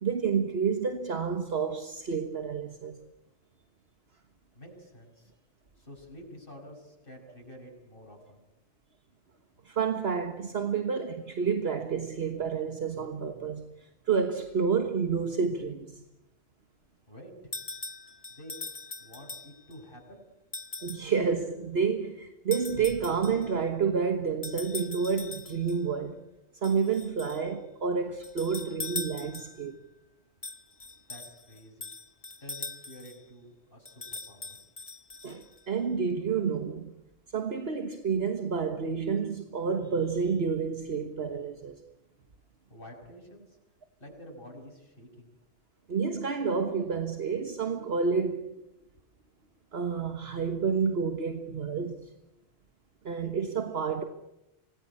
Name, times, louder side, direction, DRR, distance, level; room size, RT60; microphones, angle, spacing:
voice 1, 0.0-3.0 9.6-13.7 14.1-16.0 20.8-26.2 26.6-29.8 35.2-36.9 37.3-41.8 45.9-48.5 49.7-52.1 53.0-54.0, right 5 dB, 60° right, 1.6 m, -29 dB
voice 2, 4.5-5.4 5.8-8.4 17.1-17.5 18.3-18.5 19.0-20.2 31.1-31.9 32.4-34.6 42.7-43.6 44.0-45.3, equal, 50° left, 6.5 m, -49 dB
sound 1, 17.5-19.8 20.5-21.1 22.5-23.5 24.4-25.8 26.6-27.5 28.2-29.7 30.4-33.2 33.9-35.6, left 3 dB, 35° left, 1.2 m, -41 dB
26.0 x 19.0 x 8.6 m
omnidirectional pair, 1.2 m